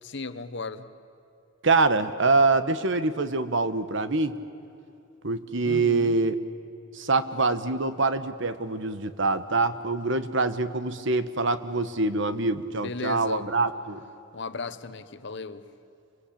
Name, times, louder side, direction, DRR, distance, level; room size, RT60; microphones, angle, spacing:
voice 1, 0.0-0.8 5.6-6.2 12.8-13.5 14.3-15.6, left 3 dB, 60° left, 11 dB, 1.2 m, -35 dB
voice 2, 1.6-4.4 5.2-6.4 6.9-14.0, right 3 dB, 60° right, 12 dB, 1.3 m, -25 dB
29.5 x 23.5 x 8.7 m, 2.8 s
head